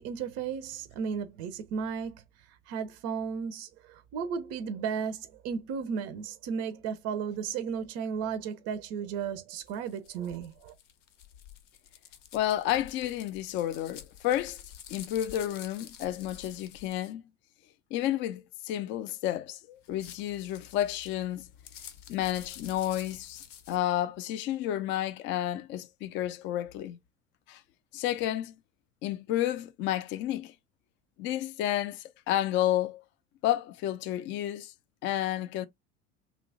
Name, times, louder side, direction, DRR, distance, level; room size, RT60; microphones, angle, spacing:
voice 1, 0.0-10.7, right 6 dB, 40° right, 0.5 m, -34 dB
sound 1, 9.7-17.1 19.8-23.8, left 9 dB, 70° left, 0.6 m, -49 dB
voice 2, 12.3-14.6 14.9-17.2 17.9-21.5 22.1-27.0 27.5-27.6 27.9-28.5 29.0-30.5 31.2-33.0 33.4-34.7 35.0-35.7, left 12 dB, 30° left, 0.4 m, -31 dB
2.9 x 2.2 x 2.6 m
figure-of-eight pair, 70°, 38 cm